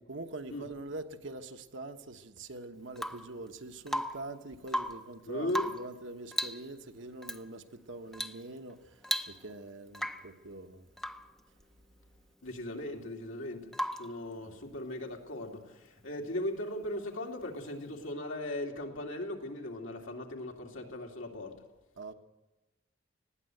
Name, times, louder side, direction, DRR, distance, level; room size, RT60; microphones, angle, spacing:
voice 1, 0.1-10.9 14.4-14.6 22.0-22.1, right 2 dB, 65° right, 1.2 m, -44 dB
Rain / Water tap faucet / Drip, 2.9-3.3 3.9-4.3 4.6-5.1 5.5-5.9 6.3-6.7 7.2-7.4 8.1-8.4 8.7-8.8 9.0-9.6 9.9-10.3 11.0-11.3 13.7-14.2 16.1-16.2, equal, ahead, 0.6 m, -36 dB
voice 2, 5.3-5.7 12.4-13.7 14.0-21.6, left 1 dB, 80° left, 2.8 m, -38 dB
20.0 x 16.5 x 7.9 m
head